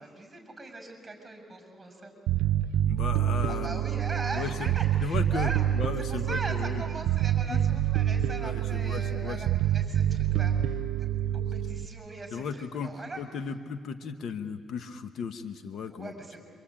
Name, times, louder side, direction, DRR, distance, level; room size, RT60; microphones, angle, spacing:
voice 1, 0.0-2.1 3.5-5.6 6.0-11.1 11.3-13.2 15.9-16.4, right 3 dB, 15° right, 4 dB, 6.3 m, -40 dB
Bass guitar, 2.3-11.9, right 11 dB, 85° right, 0.6 m, -27 dB
voice 2, 2.9-3.8 4.3-4.7 5.0-6.8 7.5-7.6 8.4-9.4 10.2-10.4 12.3-12.9 13.2-16.1, left 5 dB, 65° left, 8 dB, 1.1 m, -36 dB
27.5 x 25.0 x 8.7 m, 2.1 s
cardioid pair, 90°, 0 cm